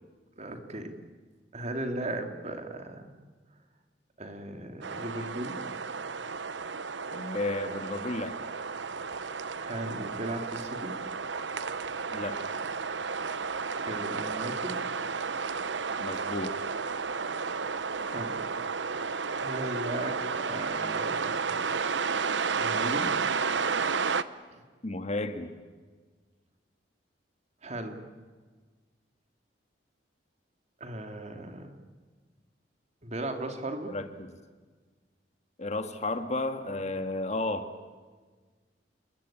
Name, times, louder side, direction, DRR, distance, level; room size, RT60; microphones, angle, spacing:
voice 1, 0.4-0.9 1.5-3.1 4.2-5.6 9.6-11.0 13.8-14.9 18.1-18.4 19.4-21.6 22.6-23.2 24.5-24.6 27.6-28.0 30.8-31.7 33.0-34.0, right 1 dB, 40° right, 5 dB, 2.9 m, -37 dB
sound 1, 4.8-24.2, right 5 dB, 80° right, 1.0 m, -32 dB
voice 2, 7.1-8.4 12.1-12.4 16.0-16.6 24.8-25.5 33.9-34.4 35.6-37.7, left 2 dB, 40° left, 8 dB, 1.8 m, -33 dB
29.0 x 22.0 x 8.8 m, 1.4 s
head